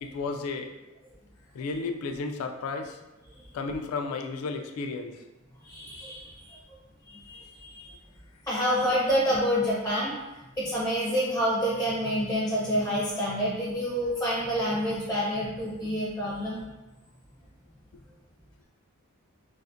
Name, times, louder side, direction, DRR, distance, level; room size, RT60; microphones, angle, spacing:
voice 1, 0.0-0.7 1.5-3.0 3.5-5.2, left 4 dB, 70° left, 7 dB, 0.3 m, -33 dB
voice 2, 5.6-6.6 7.1-7.9 8.5-10.2 10.6-16.6, equal, 10° left, -6 dB, 0.4 m, -28 dB
2.4 x 2.4 x 2.5 m, 1.1 s
head